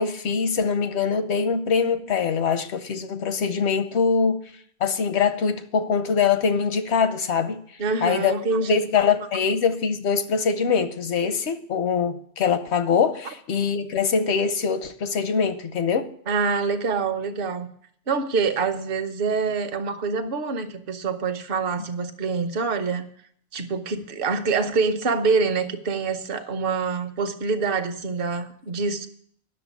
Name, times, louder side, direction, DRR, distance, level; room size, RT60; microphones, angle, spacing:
voice 1, 0.0-4.4 4.8-7.6 8.0-8.4 8.7-16.1, left 6 dB, 85° left, 1.1 m, -23 dB
voice 2, 7.8-9.1 16.3-17.7 18.1-23.1 23.5-29.1, right 4 dB, 60° right, 1.1 m, -25 dB
10.0 x 6.6 x 8.2 m
omnidirectional pair, 1.1 m